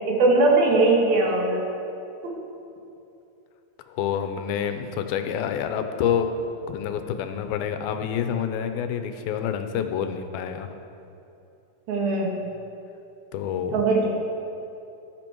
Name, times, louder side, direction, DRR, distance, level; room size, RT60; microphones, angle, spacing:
voice 1, 0.1-1.6 11.9-12.4 13.7-14.1, right 2 dB, 80° right, -1 dB, 3.7 m, -20 dB
voice 2, 3.9-6.3 6.7-10.7 13.3-13.7, left 8 dB, 85° left, 8 dB, 2.6 m, -27 dB
14.0 x 12.5 x 4.6 m, 2.8 s
omnidirectional pair, 4.1 m